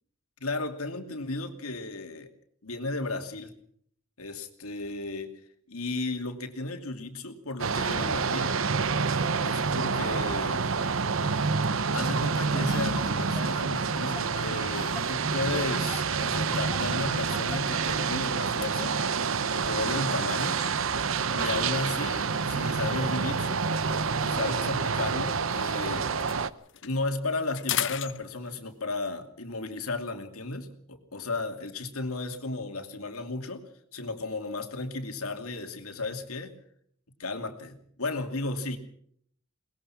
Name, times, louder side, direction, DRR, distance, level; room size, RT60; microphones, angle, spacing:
voice 1, 0.4-2.3 2.6-3.5 4.2-5.3 5.7-8.5 9.4-10.7 11.9-19.0 19.5-20.6 21.3-23.7 24.2-26.1 26.8-36.5 37.2-38.8, left 2 dB, 90° left, 6 dB, 2.6 m, -34 dB
sound 1, 7.6-26.5, right 5 dB, 65° right, 0.8 m, -28 dB
sound 2, 12.0-18.2, left 3 dB, 20° left, 3.1 m, -40 dB
sound 3, 16.2-16.4 16.9-17.0 17.3-21.3 22.1-25.7 26.0-28.8, left 12 dB, 55° left, 0.8 m, -40 dB
22.0 x 20.0 x 5.9 m, 0.65 s
head